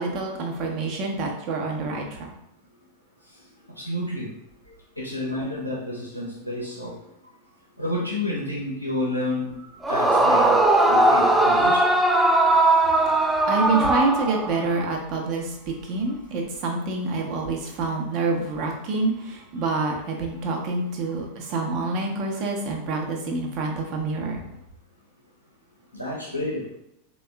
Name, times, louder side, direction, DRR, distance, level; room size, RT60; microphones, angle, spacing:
voice 1, 0.0-2.3 13.0-24.4, right 3 dB, 40° right, 0 dB, 0.7 m, -27 dB
voice 2, 3.7-4.3 5.0-7.0 7.8-11.9 25.9-26.6, left 1 dB, 85° left, -4 dB, 0.7 m, -30 dB
Yell / Screaming, 9.8-14.7, right 2 dB, 5° right, 0.3 m, -19 dB
3.5 x 2.3 x 3.3 m, 0.79 s
figure-of-eight pair, 90°, 0 cm